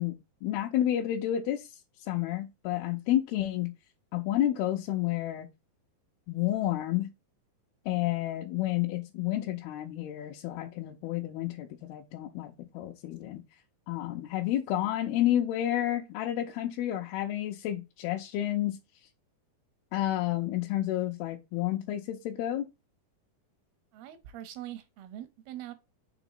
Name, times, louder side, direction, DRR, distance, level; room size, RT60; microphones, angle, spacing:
voice 1, 0.0-3.7 4.1-5.5 6.3-7.1 7.9-13.4 13.9-18.8 19.9-22.7, left 13 dB, 85° left, 2.6 m, -30 dB
voice 2, 23.9-25.7, right 12 dB, 85° right, 2.8 m, -43 dB
6.8 x 2.9 x 5.5 m
omnidirectional pair, 4.4 m